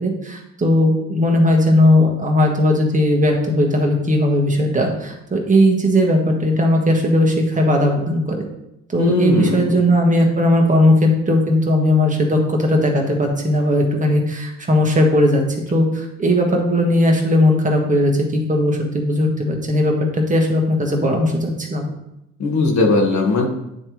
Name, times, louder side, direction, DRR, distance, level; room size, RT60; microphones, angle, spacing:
voice 1, 0.0-8.4 8.9-15.4 15.7-21.9, left 1 dB, 25° right, 1 dB, 1.4 m, -17 dB
voice 2, 9.0-9.7 22.4-23.5, left 3 dB, 65° left, 1 dB, 1.5 m, -18 dB
9.6 x 3.3 x 3.1 m, 0.85 s
cardioid pair, 90°, 30 cm